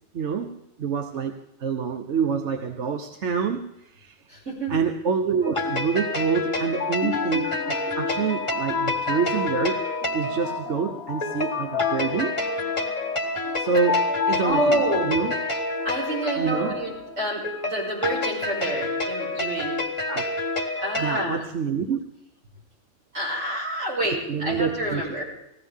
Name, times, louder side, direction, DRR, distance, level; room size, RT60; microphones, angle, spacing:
voice 1, 0.1-0.5 0.8-4.2 4.7-9.8 10.1-12.4 13.6-15.3 16.4-16.7 20.1-20.3 21.0-22.0 24.3-25.2, right 6 dB, 70° right, 6 dB, 1.1 m, -27 dB
voice 2, 4.3-4.7 14.4-15.1 15.8-19.8 20.8-21.4 23.1-25.2, right 1 dB, 85° right, -5 dB, 6.5 m, -28 dB
sound 1, 5.4-21.3, left 2 dB, 25° left, 1.4 m, -29 dB
sound 2, 6.6-17.7, left 6 dB, 65° left, 0.9 m, -31 dB
19.5 x 15.5 x 3.6 m, 0.85 s
omnidirectional pair, 1.2 m